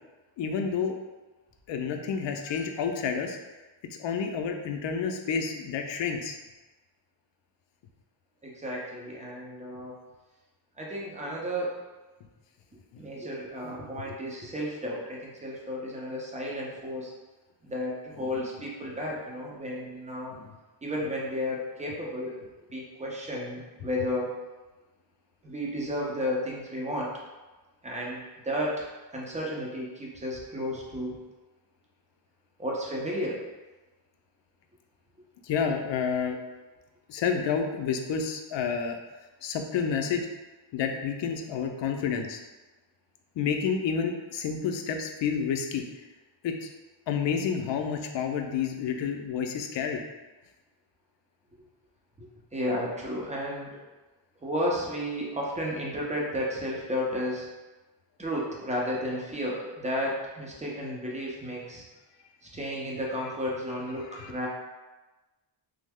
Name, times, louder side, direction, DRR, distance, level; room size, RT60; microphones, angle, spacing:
voice 1, 0.4-0.9 1.7-3.4 3.9-6.4 12.9-13.0 20.3-20.5 35.4-36.4 37.1-39.0 39.4-40.3 40.7-42.4 43.4-45.8 46.4-46.7 47.1-50.0 64.2-64.3, left 6 dB, 70° left, 4 dB, 0.5 m, -29 dB
voice 2, 8.4-9.9 10.8-11.8 13.0-17.1 17.6-20.4 20.8-22.4 22.7-24.3 25.4-27.1 27.8-28.8 29.1-31.2 32.6-33.4 52.2-52.3 52.5-53.8 54.4-57.5 58.2-61.8 62.5-64.5, equal, 15° right, -3 dB, 0.6 m, -33 dB
3.2 x 2.0 x 3.5 m, 1.2 s
wide cardioid pair, 130°, 46 cm